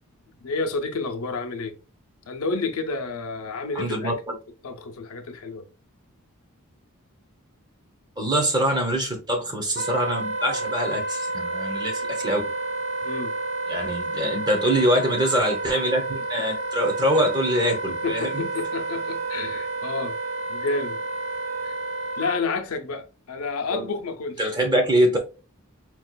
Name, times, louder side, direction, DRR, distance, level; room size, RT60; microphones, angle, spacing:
voice 1, 0.3-1.8 2.3-4.4 4.6-5.7 13.0-13.4 17.1-17.2 17.9-20.2 20.5-21.0 21.6-21.7 22.2-24.5, left 4 dB, 80° left, 0.6 m, -30 dB
voice 2, 3.7-4.3 8.2-12.4 13.7-18.5 23.7-23.9 24.4-25.2, equal, 20° right, 0.7 m, -24 dB
Wind instrument woodwind instrument, 9.7-22.4, right 2 dB, 55° right, 0.9 m, -30 dB
4.3 x 2.3 x 2.2 m
head